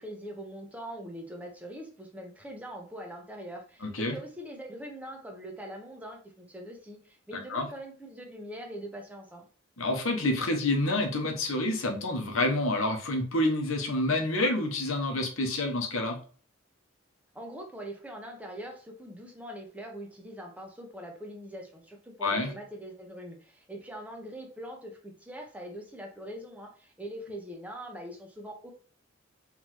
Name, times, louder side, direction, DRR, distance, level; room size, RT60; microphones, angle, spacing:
voice 1, 0.0-9.5 17.3-28.7, equal, 5° right, 1 dB, 1.0 m, -42 dB
voice 2, 3.8-4.1 7.5-7.7 9.8-16.2 22.2-22.5, left 2 dB, 85° left, 3 dB, 1.1 m, -28 dB
3.9 x 3.5 x 3.1 m, 0.42 s
head